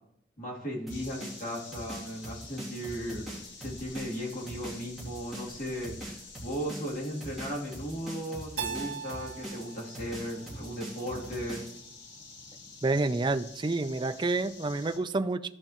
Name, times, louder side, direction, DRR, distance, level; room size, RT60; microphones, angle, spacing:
voice 1, 0.4-3.2 3.6-5.9 6.4-11.6, equal, 50° left, -4 dB, 2.9 m, -36 dB
sound 1, 0.9-15.0, left 4 dB, 85° left, 1.7 m, -50 dB
sound 2, 0.9-11.8, right 1 dB, ahead, 2.6 m, -42 dB
Keyboard (musical), 8.6-11.4, right 7 dB, 70° right, 0.9 m, -40 dB
voice 2, 12.8-15.5, right 3 dB, 25° right, 9 dB, 0.4 m, -28 dB
15.0 x 5.3 x 3.0 m, 0.78 s
head